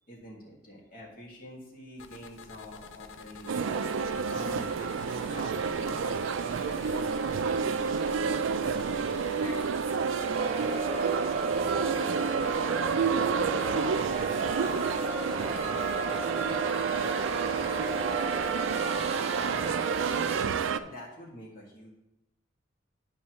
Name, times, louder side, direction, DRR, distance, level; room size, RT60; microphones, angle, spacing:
voice 1, 0.1-3.6 4.3-6.2 20.8-21.9, equal, 50° left, -3 dB, 2.2 m, -46 dB
sound 1, 2.0-19.1, left 6 dB, 80° left, 0.5 m, -48 dB
sound 2, 3.5-20.8, right 6 dB, 85° right, 0.4 m, -29 dB
voice 2, 9.2-9.7 10.0-15.0 15.4-18.0 18.3-19.1, equal, 15° left, -5 dB, 1.4 m, -51 dB
sound 3, 10.3-20.4, right 3 dB, 35° right, 0.8 m, -34 dB
11.5 x 5.5 x 3.1 m, 0.92 s
head